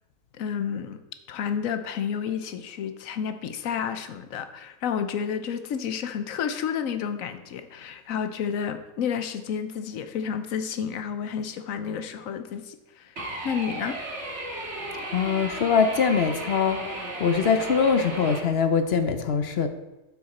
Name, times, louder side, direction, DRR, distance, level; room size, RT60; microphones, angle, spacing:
voice 1, 0.4-1.0 1.3-13.1 13.4-14.0, left 7 dB, 70° left, 9 dB, 1.1 m, -30 dB
sound 1, 13.2-18.4, right 1 dB, 50° right, 2.0 m, -35 dB
voice 2, 15.1-16.8 17.2-19.7, left 6 dB, 55° left, 8 dB, 0.8 m, -23 dB
12.0 x 6.0 x 4.2 m, 1.0 s
omnidirectional pair, 1.5 m